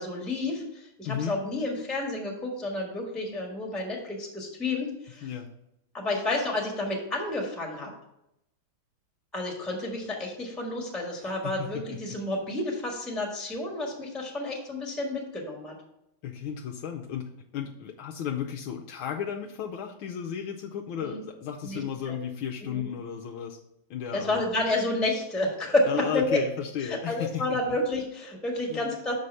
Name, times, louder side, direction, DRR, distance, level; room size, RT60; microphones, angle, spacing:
voice 1, 0.0-5.3 5.9-7.9 9.3-15.7 21.0-21.2 21.6-22.2 22.6-22.8 24.1-26.4 26.8-29.1, left 2 dB, ahead, -1 dB, 1.3 m, -30 dB
voice 2, 1.0-1.4 5.2-5.5 11.2-12.2 16.2-23.6 23.9-24.4 25.9-27.6 28.7-28.9, left 8 dB, 80° left, 1 dB, 1.5 m, -34 dB
6.5 x 4.7 x 5.5 m, 0.82 s
omnidirectional pair, 2.3 m